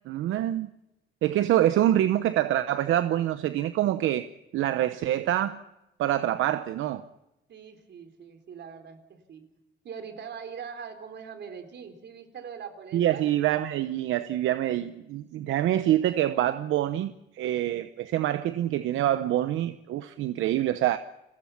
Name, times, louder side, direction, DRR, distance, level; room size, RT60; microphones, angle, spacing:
voice 1, 0.1-0.7 1.2-4.3 4.5-5.6 6.0-7.0 12.9-21.0, right 12 dB, 85° right, 0.9 m, -26 dB
voice 2, 7.5-9.4 9.8-13.3, right 7 dB, 60° right, 4.2 m, -42 dB
30.0 x 21.0 x 6.0 m
cardioid pair, 90°, 20 cm